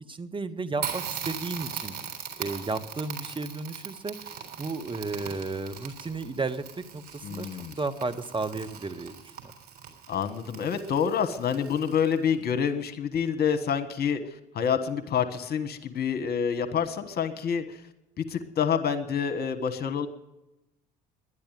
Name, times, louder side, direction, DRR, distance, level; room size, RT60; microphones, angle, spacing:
voice 1, 0.0-1.9 2.4-7.5 7.8-9.1, right 3 dB, 25° right, 10 dB, 1.2 m, -33 dB
Crackle, 0.8-12.3, right 8 dB, 50° right, 3.7 m, -40 dB
voice 2, 7.2-7.8 10.1-14.2 14.5-17.8 18.2-20.1, left 7 dB, 50° left, 8 dB, 1.3 m, -27 dB
11.0 x 10.5 x 9.1 m, 0.94 s
hypercardioid pair, 55°, 21 cm